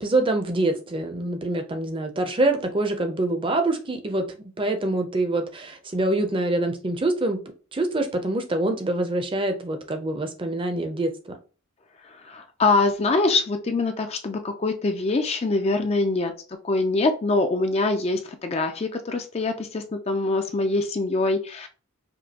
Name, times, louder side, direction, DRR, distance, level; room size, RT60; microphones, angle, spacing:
voice 1, 0.0-7.4 7.7-11.1, right 2 dB, 25° right, 6 dB, 0.6 m, -25 dB
voice 2, 12.2-16.3 16.6-21.7, left 3 dB, 30° left, 6 dB, 0.4 m, -24 dB
5.1 x 2.2 x 2.8 m, 0.36 s
head